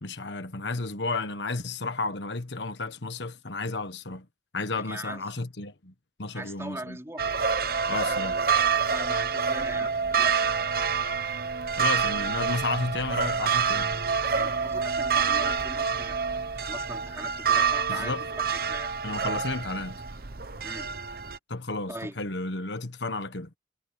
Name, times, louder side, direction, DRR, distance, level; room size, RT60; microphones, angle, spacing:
voice 1, 0.0-4.3 4.5-5.9 6.2-7.0 7.9-8.4 11.8-13.9 17.9-18.2 19.0-20.0 21.5-23.5, left 3 dB, 75° left, 1.4 m, -32 dB
voice 2, 4.7-5.2 6.3-7.2 8.9-10.5 14.3-16.2 16.7-18.1 18.5-18.9 20.6-20.9 21.9-22.2, right 1 dB, 15° right, 4.6 m, -39 dB
sound 1, 7.2-21.4, right 6 dB, 50° right, 1.0 m, -27 dB
head